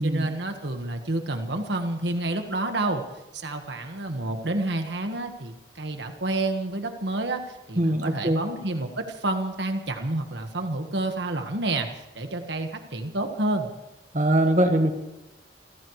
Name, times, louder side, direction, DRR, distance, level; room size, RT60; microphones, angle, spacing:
voice 1, 0.0-3.0 3.3-13.7, right 2 dB, 70° right, 5 dB, 1.5 m, -29 dB
voice 2, 7.8-8.4 14.1-14.9, right 1 dB, 40° right, 4 dB, 1.6 m, -22 dB
28.0 x 15.5 x 3.2 m, 1.0 s
head